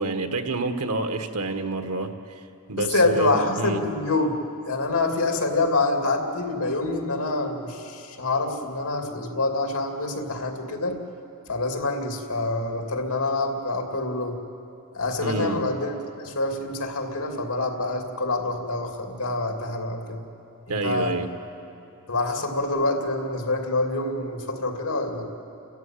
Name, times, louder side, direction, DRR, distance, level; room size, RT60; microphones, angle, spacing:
voice 1, 0.0-2.4 2.7-3.8 15.2-15.6 20.7-21.3, right 3 dB, 90° right, 6 dB, 1.5 m, -28 dB
voice 2, 2.8-4.4 4.6-11.0 11.5-14.4 14.9-20.2 20.8-21.1 22.1-25.3, left 2 dB, 70° left, 3 dB, 2.7 m, -26 dB
29.5 x 14.0 x 9.2 m, 2.8 s
head